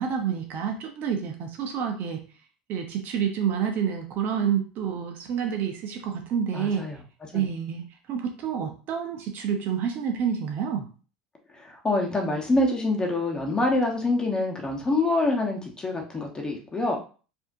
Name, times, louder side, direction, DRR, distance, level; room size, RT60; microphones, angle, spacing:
voice 1, 0.0-2.2 2.7-6.9 7.3-10.9, right 7 dB, 50° right, 4 dB, 0.9 m, -28 dB
voice 2, 6.5-7.0 7.3-7.5 11.6-17.0, left 2 dB, 20° left, 1 dB, 1.2 m, -26 dB
4.7 x 2.8 x 2.7 m, 0.38 s
hypercardioid pair, 80°, 4 cm